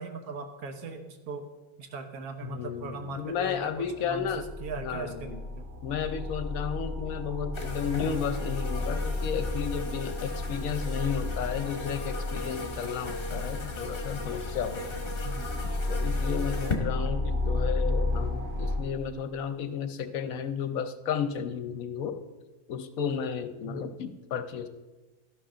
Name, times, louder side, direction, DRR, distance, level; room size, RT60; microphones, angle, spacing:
voice 1, 0.0-1.5 1.8-3.7 4.0-4.3 4.6-5.6 15.2-15.5 17.0-17.2 23.6-23.9, right 3 dB, 90° right, 6 dB, 1.5 m, -39 dB
voice 2, 2.4-4.4 4.8-5.4 5.8-15.1 15.9-22.2 22.7-24.7, left 7 dB, 75° left, 9 dB, 1.1 m, -33 dB
sound 1, 3.4-3.5 3.7-18.8, left 2 dB, 50° right, 2.5 m, -33 dB
sound 2, 7.5-16.8, left 3 dB, 40° left, 1.5 m, -38 dB
12.5 x 11.5 x 3.8 m, 1.2 s
omnidirectional pair, 1.5 m